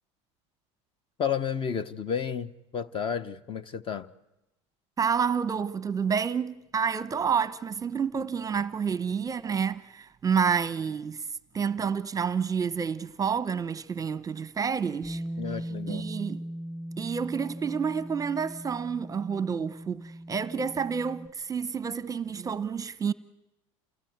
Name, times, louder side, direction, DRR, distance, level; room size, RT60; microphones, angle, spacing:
voice 1, 1.2-4.1 15.4-16.1, left 7 dB, 35° left, 1.0 m, -32 dB
voice 2, 5.0-11.3 11.5-15.2 15.9-16.4 17.0-23.1, right 6 dB, 20° right, 0.9 m, -29 dB
Bass guitar, 15.0-21.3, equal, 10° left, 7.6 m, -39 dB
29.0 x 18.0 x 9.4 m
supercardioid pair, 110°, 16 cm